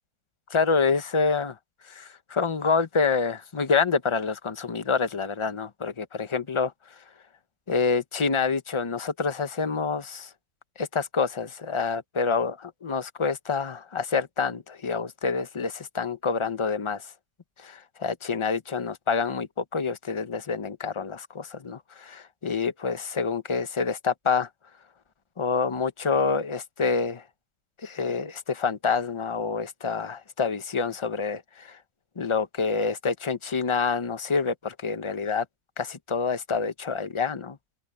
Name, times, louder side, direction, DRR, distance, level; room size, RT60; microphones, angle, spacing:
voice 1, 0.5-1.6 1.9-6.7 7.7-10.3 10.8-17.1 17.6-24.5 25.4-27.2 27.8-31.8 32.2-35.4 35.8-37.6, left 5 dB, 25° left, 0.7 m, -27 dB
omnidirectional pair, 1.7 m